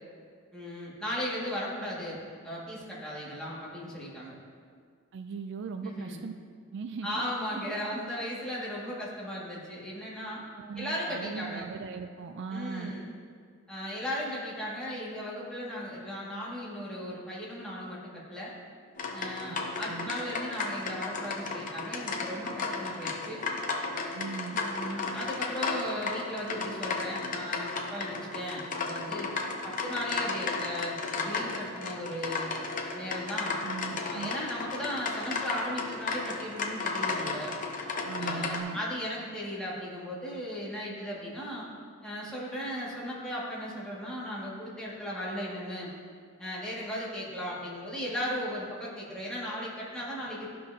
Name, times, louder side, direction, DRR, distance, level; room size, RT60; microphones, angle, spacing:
voice 1, 0.5-4.3 5.8-6.2 7.0-10.4 10.8-11.7 12.5-13.1 13.7-18.5 19.1-23.4 24.6-29.3 29.6-32.6 32.9-33.5 34.0-37.5 38.2-41.7 42.0-45.9 46.4-50.5, equal, 5° left, -7 dB, 1.8 m, -36 dB
voice 2, 5.1-6.3 6.7-7.2 10.6-12.9 19.5-19.6 19.9-20.1 24.1-24.6 33.6-34.3 38.1-38.8, right 5 dB, 60° right, 7 dB, 0.3 m, -39 dB
sound 1, 19.0-38.6, left 4 dB, 40° left, 0.7 m, -34 dB
13.0 x 5.4 x 2.7 m, 2.1 s
head